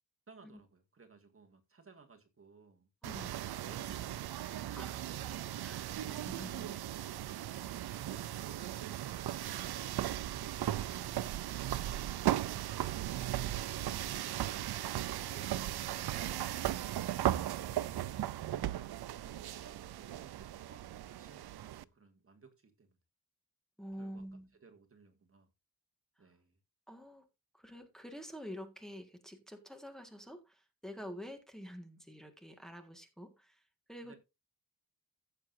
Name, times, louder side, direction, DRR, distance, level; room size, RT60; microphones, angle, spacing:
voice 1, 0.3-2.9 3.6-5.5 7.4-9.9 19.2-23.0 24.0-24.2 24.6-25.5 26.2-26.6 34.0-34.2, right 4 dB, 35° right, 1.8 m, -60 dB
voice 2, 3.0-3.4 4.7-4.9 5.6-6.7 23.8-24.5 26.2-26.3 26.9-27.3 27.5-33.6 33.9-34.2, equal, ahead, 1.7 m, -48 dB
sound 1, 3.0-21.8, right 12 dB, 90° right, 0.6 m, -37 dB
15.5 x 7.5 x 2.7 m
wide cardioid pair, 135°, 37 cm